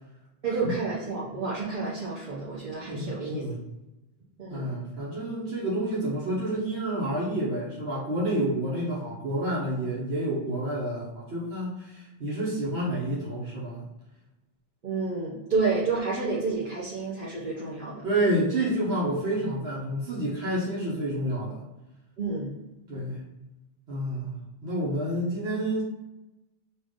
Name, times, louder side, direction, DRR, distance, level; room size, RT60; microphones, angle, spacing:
voice 1, 0.4-3.4 4.4-4.7 14.8-18.0 22.2-22.5, right 4 dB, 55° right, -7 dB, 1.0 m, -30 dB
voice 2, 2.9-3.6 4.5-13.9 18.0-21.6 22.9-23.3 23.9-25.8, right 1 dB, 80° right, -6 dB, 1.3 m, -29 dB
5.7 x 2.6 x 3.6 m, 0.97 s
omnidirectional pair, 1.1 m